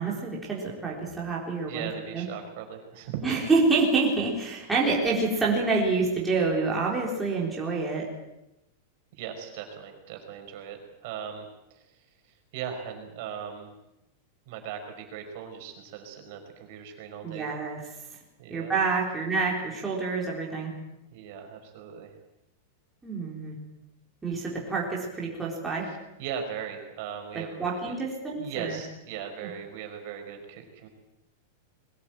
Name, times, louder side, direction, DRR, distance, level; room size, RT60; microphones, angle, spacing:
voice 1, 0.0-2.2 3.2-8.0 17.2-17.8 18.5-20.7 23.0-23.6 24.2-25.9 27.3-28.8, right 4 dB, 5° right, -4 dB, 3.9 m, -27 dB
voice 2, 1.7-3.4 9.1-12.0 12.2-13.7 14.5-17.5 18.4-18.7 21.1-22.1 25.9-27.8 28.4-30.9, right 8 dB, 45° right, 4 dB, 5.2 m, -39 dB
22.0 x 18.5 x 9.2 m, 0.90 s
supercardioid pair, 175°, 0 cm